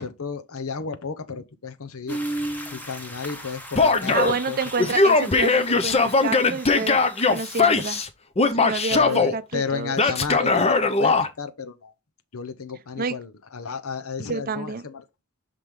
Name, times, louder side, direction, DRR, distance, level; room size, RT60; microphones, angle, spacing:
voice 1, 0.0-2.2 2.7-4.1 4.5-4.6 4.8-4.9 5.7-6.1 8.9-11.9 12.3-15.0, left 5 dB, 75° left, 0.8 m, -33 dB
sound 1, 2.1-8.0, right 1 dB, 10° left, 0.9 m, -36 dB
Male speech man speaking / Yell, 3.8-4.4 4.8-8.1 8.4-9.3 10.0-11.3, left 3 dB, 30° left, 0.7 m, -20 dB
voice 2, 4.1-7.0 7.3-8.0 8.6-10.1 13.0-13.2 14.2-14.8, right 4 dB, 40° right, 0.6 m, -29 dB
6.0 x 4.9 x 3.6 m
head